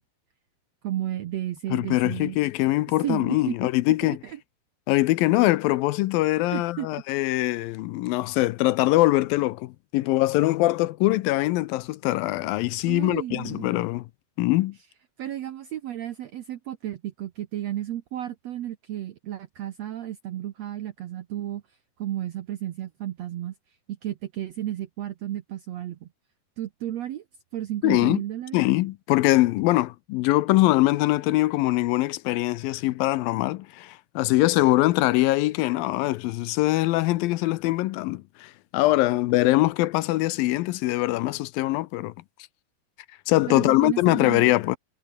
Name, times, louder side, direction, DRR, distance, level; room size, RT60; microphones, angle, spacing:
voice 1, 0.8-2.4 3.0-3.7 4.2-4.4 6.5-6.9 12.9-13.8 15.2-21.6 22.0-23.5 23.9-26.1 26.6-27.2 27.5-28.6 43.5-44.5, right 12 dB, 70° right, 1.6 m, -33 dB
voice 2, 1.7-4.2 4.9-14.1 14.4-14.8 27.8-28.2 28.5-42.1 43.3-44.8, left 18 dB, 80° left, 2.4 m, -23 dB
omnidirectional pair, 4.3 m